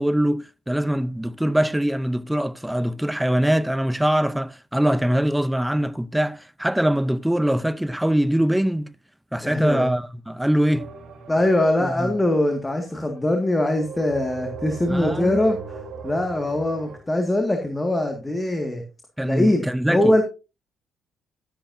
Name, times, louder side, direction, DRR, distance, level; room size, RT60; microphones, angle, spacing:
voice 1, 0.0-8.9 9.3-10.9 11.8-12.1 14.9-15.4 19.2-20.2, right 1 dB, 5° right, 0.6 m, -23 dB
voice 2, 9.4-9.9 11.3-18.8 19.2-20.2, left 1 dB, 15° left, 1.9 m, -22 dB
sound 1, 10.7-13.1 13.7-17.0, right 5 dB, 65° right, 3.5 m, -38 dB
12.0 x 10.5 x 2.7 m
cardioid pair, 90°, 0 cm